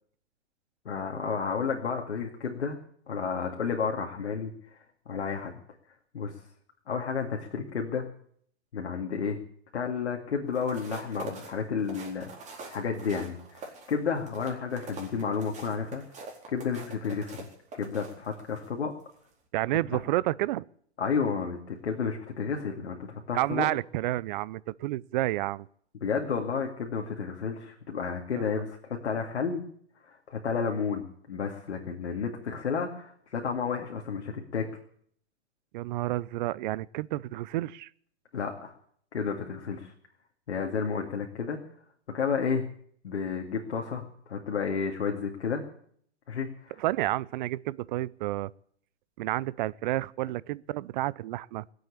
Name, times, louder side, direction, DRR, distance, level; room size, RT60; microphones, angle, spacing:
voice 1, 0.8-2.8 3.1-4.8 5.1-5.5 6.1-6.3 6.9-8.1 8.7-9.4 9.7-16.0 16.5-17.5 17.7-18.9 19.9-20.0 21.0-23.7 26.0-29.6 30.0-34.7 38.3-38.7 39.1-39.9 40.5-41.6 42.1-42.6 43.0-45.6 46.3-46.7, left 6 dB, 80° left, 2.4 m, -31 dB
sound 1, 10.5-18.7 19.1-19.3, right 3 dB, 20° right, 4.3 m, -45 dB
voice 2, 19.5-20.6 23.3-25.7 28.3-28.6 35.7-37.9 46.8-48.5 49.2-51.7, right 16 dB, 45° right, 0.6 m, -30 dB
21.5 x 8.0 x 8.4 m
hypercardioid pair, 120°, 33 cm